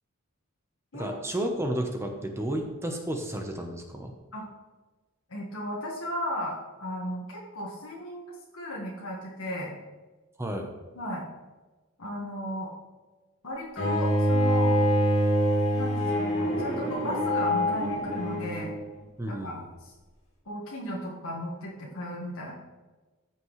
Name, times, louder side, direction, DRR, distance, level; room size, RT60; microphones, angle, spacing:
voice 1, 0.9-4.1 10.4-10.7 19.2-19.6, right 1 dB, 10° right, 3 dB, 0.8 m, -32 dB
voice 2, 5.3-9.7 10.9-11.2 12.0-12.7 13.4-14.7 15.7-18.7 19.3-19.9 20.4-22.5, equal, 75° left, -3 dB, 1.5 m, -35 dB
Bowed string instrument, 13.8-18.8, equal, 30° left, 2.2 m, -25 dB
14.0 x 6.0 x 3.2 m, 1.3 s
head